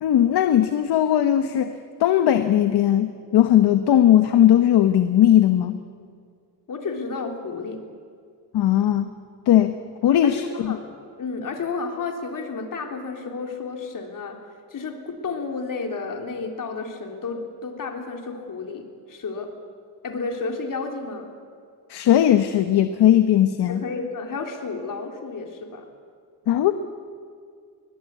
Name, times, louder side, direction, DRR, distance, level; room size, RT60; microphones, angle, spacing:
voice 1, 0.0-1.7 2.0-5.8 8.5-9.1 9.5-9.8 10.0-10.8 21.9-23.8 26.5-26.7, left 11 dB, 75° left, 9 dB, 1.1 m, -18 dB
voice 2, 6.7-7.8 10.2-10.9 11.2-14.4 14.7-19.5 20.0-21.3 23.7-25.8, left 4 dB, 50° left, 3 dB, 3.6 m, -31 dB
23.0 x 20.0 x 8.3 m, 2.2 s
cardioid pair, 95°, 40 cm